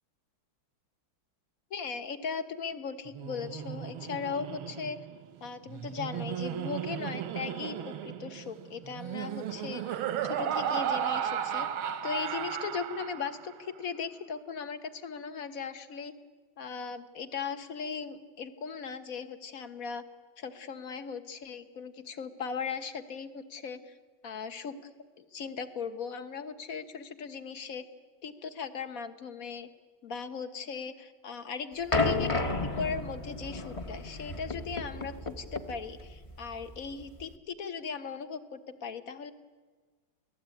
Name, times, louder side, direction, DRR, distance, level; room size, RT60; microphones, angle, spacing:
voice 1, 1.7-5.0 5.4-11.7 12.0-16.1 16.6-20.0 20.4-23.9 24.2-24.8 25.2-27.8 28.2-29.7 30.0-32.3 32.8-39.3, left 6 dB, 45° left, 11 dB, 1.6 m, -38 dB
Laughter, 3.1-13.5, right 9 dB, 90° right, 1.8 m, -35 dB
sound 1, 31.9-37.3, left 3 dB, 20° left, 1.0 m, -33 dB
28.5 x 19.0 x 9.2 m, 1.4 s
omnidirectional pair, 2.2 m